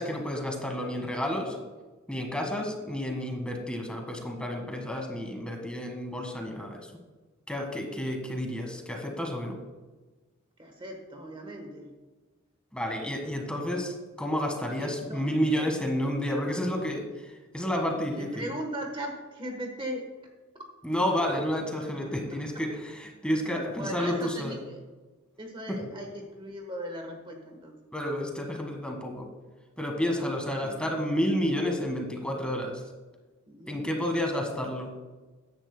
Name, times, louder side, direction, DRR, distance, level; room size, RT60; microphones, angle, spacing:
voice 1, 0.0-1.6 2.1-6.9 7.5-9.6 12.7-18.5 20.8-24.6 25.7-25.8 27.9-29.3 29.8-32.8 33.7-34.9, equal, 5° left, 2 dB, 1.5 m, -30 dB
voice 2, 10.6-11.9 14.7-15.7 18.1-20.0 22.0-22.1 22.5-22.6 23.4-24.8 25.4-27.8 30.0-31.0 33.5-34.3, equal, 25° right, 2 dB, 1.2 m, -39 dB
14.5 x 10.5 x 2.2 m, 1.3 s
head